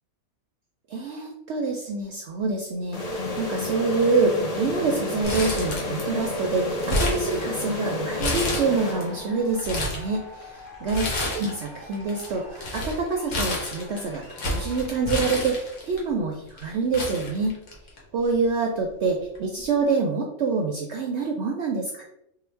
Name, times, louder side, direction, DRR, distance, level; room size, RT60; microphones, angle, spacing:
voice 1, 0.9-14.2 14.5-17.6 18.1-22.0, right 4 dB, 65° right, 1 dB, 0.7 m, -26 dB
sound 1, 2.9-9.6, left 2 dB, 50° left, 0.4 m, -30 dB
Crumpling crinkling, 5.2-6.2 6.5-7.8 8.2-9.0 9.4-10.1 10.9-11.7 11.9-16.0 16.6-16.7 16.9-18.0 18.3-18.4 19.3-19.6, left 1 dB, 70° left, 1.4 m, -29 dB
sound 2, 7.8-15.4, equal, 25° left, 1.3 m, -46 dB
3.8 x 2.1 x 4.3 m, 0.79 s
omnidirectional pair, 1.6 m